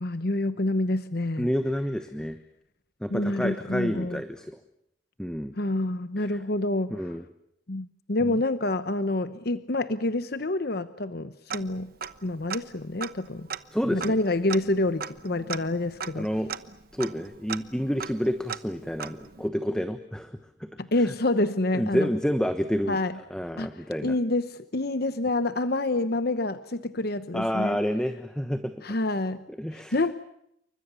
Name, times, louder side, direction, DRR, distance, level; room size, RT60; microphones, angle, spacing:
voice 1, 0.0-1.5 3.1-4.2 5.6-7.1 7.7-11.9 12.2-13.5 13.9-16.3 20.8-22.1 22.9-23.2 23.6-27.8 28.8-29.4 29.7-30.1, left 2 dB, 55° left, 12 dB, 1.0 m, -27 dB
voice 2, 1.4-2.4 3.0-4.6 5.2-5.5 6.3-6.4 6.9-7.2 8.2-8.4 13.7-14.2 16.2-16.5 16.9-20.4 21.7-23.0 23.3-24.1 27.3-28.7 29.6-30.0, equal, 5° left, 8 dB, 1.1 m, -29 dB
Tick-tock, 11.5-12.2 12.5-12.6 13.0-19.5, right 7 dB, 50° right, 1.0 m, -38 dB
29.0 x 25.0 x 7.0 m, 0.78 s
head